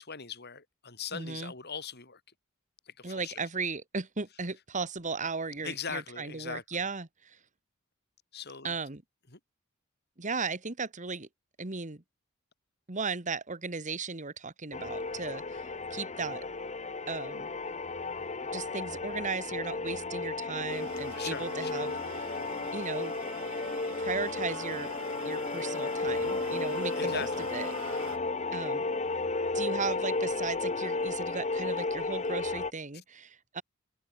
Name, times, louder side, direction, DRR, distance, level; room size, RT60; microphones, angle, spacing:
voice 1, 0.0-2.2 2.9-3.4 5.6-6.9 8.3-8.7 9.3-9.4 21.1-21.8 27.0-27.3, left 6 dB, 50° left, 4.8 m, -40 dB
voice 2, 1.1-1.5 3.0-7.4 8.6-9.0 10.2-11.3 11.6-12.0 12.9-16.4 17.1-17.5 18.5-22.3 22.7-23.1 24.0-24.9 25.3-28.1 28.5-28.8 29.5-33.6, right 4 dB, 35° right, 1.7 m, -36 dB
sound 1, 14.7-32.7, left 3 dB, 30° left, 1.4 m, -33 dB
sound 2, 20.7-28.2, right 4 dB, 75° right, 4.3 m, -45 dB
open air
head